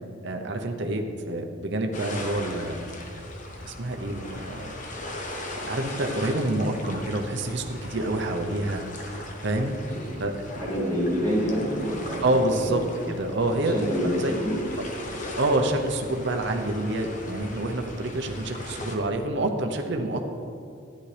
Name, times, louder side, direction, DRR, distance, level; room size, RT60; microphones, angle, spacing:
voice 1, 0.2-2.9 3.6-4.7 5.6-8.8 9.4-9.8 10.2-10.4 12.2-13.8 14.2-14.3 15.3-20.3, right 1 dB, 60° right, 4 dB, 0.8 m, -27 dB
sound 1, 1.9-19.0, left 1 dB, 40° left, 1.0 m, -39 dB
voice 2, 9.9-10.2 10.5-13.1 13.7-14.1 14.4-14.6, equal, 15° left, -10 dB, 2.8 m, -28 dB
12.5 x 10.0 x 3.4 m, 2.5 s
head